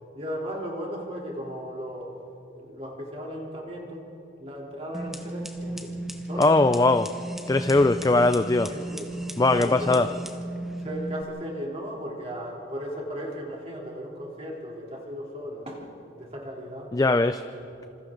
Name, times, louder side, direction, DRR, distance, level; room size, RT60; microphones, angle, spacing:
voice 1, 0.1-2.1 2.5-4.1 4.4-6.0 6.3-6.7 7.9-8.3 8.7-9.2 9.5-10.0 10.8-15.9 16.2-17.0 17.5-17.7, equal, 30° right, -2 dB, 3.4 m, -36 dB
sound 1, 4.9-11.2, right 1 dB, ahead, 1.1 m, -35 dB
voice 2, 6.4-7.1 7.5-8.7 9.4-10.1 16.9-17.4, left 2 dB, 20° left, 10 dB, 0.4 m, -20 dB
27.5 x 27.0 x 3.9 m, 2.7 s
head